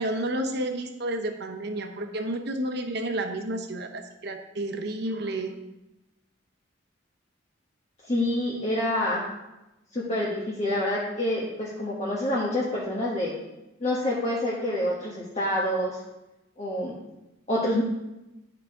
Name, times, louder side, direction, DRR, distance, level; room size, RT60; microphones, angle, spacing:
voice 1, 0.0-5.5, right 1 dB, 60° right, 5 dB, 0.9 m, -31 dB
voice 2, 8.0-9.3 9.9-13.3 13.8-16.0 16.6-16.9 17.5-17.8, left 1 dB, 35° left, -6 dB, 1.2 m, -27 dB
10.5 x 5.0 x 3.6 m, 0.96 s
head